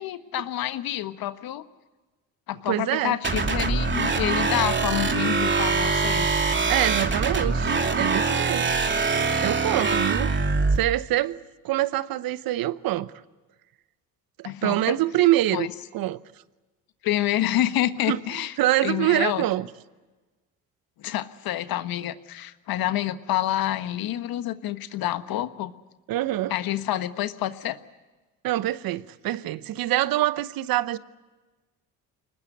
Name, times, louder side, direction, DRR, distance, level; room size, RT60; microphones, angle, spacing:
voice 1, 0.0-1.6 2.5-6.3 14.4-14.9 15.5-15.7 17.0-18.5 18.8-19.4 21.0-25.7 26.5-27.8, left 13 dB, 65° left, 1.4 m, -28 dB
voice 2, 2.7-3.2 6.7-8.6 9.4-10.3 10.7-13.1 14.4-15.7 15.9-16.2 18.1-18.2 18.6-19.7 26.1-26.5 28.4-31.0, right 14 dB, 65° right, 1.0 m, -25 dB
sound 1, 3.2-10.8, right 4 dB, 30° right, 2.7 m, -23 dB
23.5 x 20.0 x 8.1 m
supercardioid pair, 65°, 38 cm